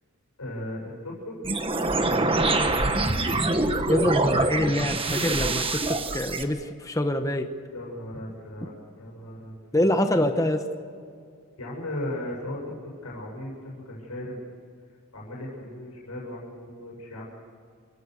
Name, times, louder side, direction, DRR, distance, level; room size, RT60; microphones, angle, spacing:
voice 1, 0.4-1.4 2.4-3.1 7.7-8.7 9.0-9.9 11.6-14.4 15.1-17.3, left 1 dB, 85° left, -3 dB, 7.6 m, -37 dB
sound 1, 1.4-6.4, right 2 dB, 25° right, 1.4 m, -25 dB
voice 2, 3.9-7.5 9.7-10.7, left 1 dB, 15° left, 6 dB, 1.1 m, -25 dB
29.0 x 16.5 x 6.7 m, 2.3 s
head